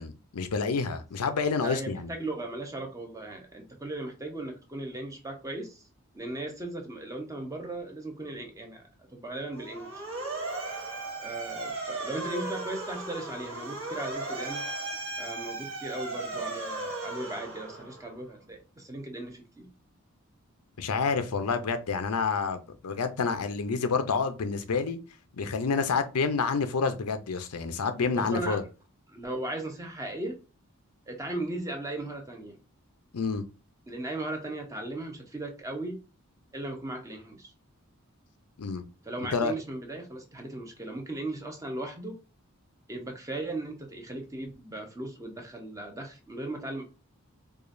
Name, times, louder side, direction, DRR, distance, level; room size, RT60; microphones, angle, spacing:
voice 1, 0.0-2.1 20.8-25.0 25.4-28.6 33.1-33.4 38.6-38.8 39.3-39.5, left 5 dB, 90° left, 0.6 m, -28 dB
voice 2, 1.6-5.8 6.1-8.8 9.1-10.0 11.2-14.6 15.2-19.7 28.1-28.6 29.1-30.4 31.1-32.6 33.9-36.0 36.5-37.5 39.0-42.1 42.9-46.8, right 2 dB, 15° right, 0.7 m, -37 dB
Motor vehicle (road) / Siren, 9.5-18.1, right 2 dB, 60° right, 1.2 m, -36 dB
4.8 x 2.4 x 2.5 m
head